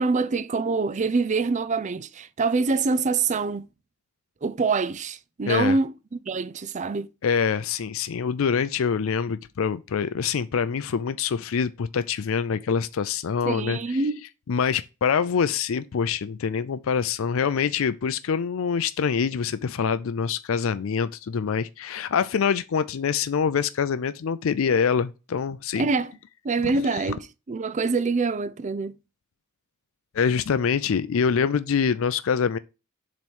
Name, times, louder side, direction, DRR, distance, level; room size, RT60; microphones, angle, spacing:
voice 1, 0.0-3.7 4.4-5.9 6.3-7.1 13.5-14.2 25.8-26.1 26.4-29.0, right 4 dB, 35° right, 0.4 m, -25 dB
voice 2, 5.5-5.8 7.2-14.0 14.5-25.9 26.6-27.0 30.1-32.6, left 6 dB, 65° left, 0.4 m, -25 dB
7.5 x 3.1 x 5.4 m
head